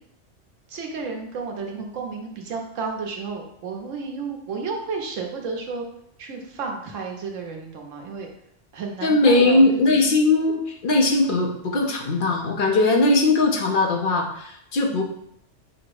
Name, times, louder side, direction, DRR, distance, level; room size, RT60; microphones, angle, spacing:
voice 1, 0.7-5.8 6.2-8.3 8.7-9.8, right 4 dB, 85° right, 1 dB, 1.2 m, -32 dB
voice 2, 9.0-15.0, left 2 dB, 50° left, 2 dB, 0.8 m, -19 dB
4.9 x 2.0 x 4.6 m, 0.72 s
omnidirectional pair, 1.3 m